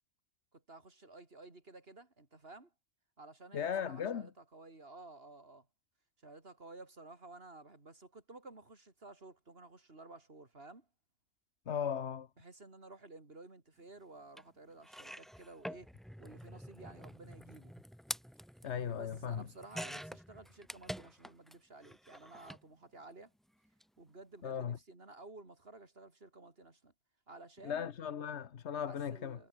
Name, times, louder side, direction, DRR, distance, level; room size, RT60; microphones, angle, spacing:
voice 1, 0.5-2.7 3.2-5.7 6.2-10.9 12.4-15.9 16.2-17.7 18.9-23.3 24.0-26.9 27.3-27.9 28.9-29.5, right 2 dB, 55° right, 3.7 m, -54 dB
voice 2, 3.5-4.3 11.7-12.3 18.6-19.4 24.4-24.8 27.6-29.4, left 8 dB, 70° left, 1.3 m, -37 dB
sound 1, 14.4-14.5 14.8-21.6 21.8-22.6 23.7-23.8 24.1-24.2, equal, ahead, 1.1 m, -47 dB
omnidirectional pair, 1.2 m